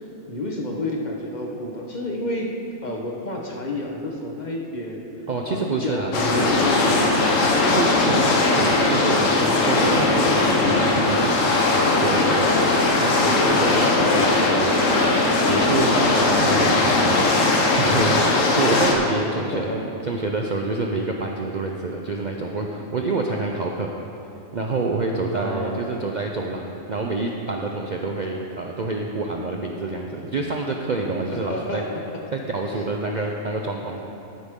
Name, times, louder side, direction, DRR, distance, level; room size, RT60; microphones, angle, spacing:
voice 1, 0.3-2.5 2.8-5.1 5.5-7.2 18.7-18.9 19.5-19.9 25.3-25.9 31.3-32.0, left 1 dB, 35° left, -1 dB, 1.1 m, -29 dB
voice 2, 5.3-6.1 7.6-19.7 20.0-23.9 24.5-31.8 32.3-34.0, right 3 dB, 45° right, 0 dB, 0.6 m, -27 dB
sound 1, 6.1-18.9, left 2 dB, 70° left, 1.5 m, -19 dB
12.0 x 10.5 x 3.7 m, 2.8 s
omnidirectional pair, 1.4 m